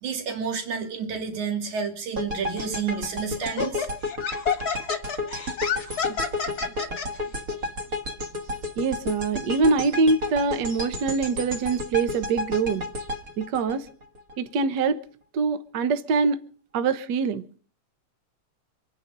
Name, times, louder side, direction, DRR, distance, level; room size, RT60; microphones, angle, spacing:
voice 1, 0.0-3.9, right 6 dB, 80° right, 3.8 m, -30 dB
sound 1, 2.1-14.3, left 2 dB, 35° right, 1.8 m, -32 dB
Laughter, 2.6-2.8 3.4-7.1, left 6 dB, 40° left, 1.7 m, -29 dB
voice 2, 8.8-12.8 13.4-13.9 14.4-15.0 15.3-16.5 16.7-17.4, right 4 dB, 60° right, 1.2 m, -24 dB
26.0 x 10.0 x 5.3 m
omnidirectional pair, 3.3 m